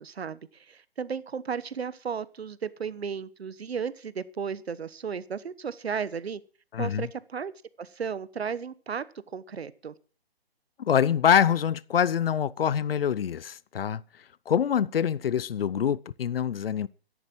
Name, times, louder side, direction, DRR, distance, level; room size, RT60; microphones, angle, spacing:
voice 1, 0.0-6.4 6.8-7.5 7.8-9.0 9.3-9.9, right 6 dB, 85° right, 1.2 m, -34 dB
voice 2, 6.7-7.1 10.8-14.0 14.5-16.9, left 8 dB, 65° left, 0.8 m, -25 dB
13.0 x 11.0 x 6.1 m
hypercardioid pair, 155°, 31 cm